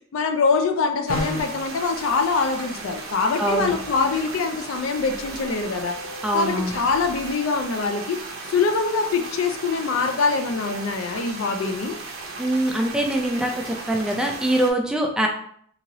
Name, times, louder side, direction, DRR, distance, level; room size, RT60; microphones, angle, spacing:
voice 1, 0.1-6.0 6.3-8.2 8.5-12.0, left 4 dB, 70° left, 6 dB, 0.4 m, -24 dB
sound 1, 1.1-1.6, left 1 dB, 85° left, 0.9 m, -28 dB
sound 2, 1.1-14.7, right 3 dB, 80° right, 0.6 m, -36 dB
sound 3, 2.7-7.4, left 1 dB, 30° right, 1.1 m, -45 dB
voice 2, 3.4-3.7 6.2-6.7 12.4-15.3, right 1 dB, 5° right, 1 dB, 0.4 m, -23 dB
2.9 x 2.8 x 2.7 m, 0.62 s
head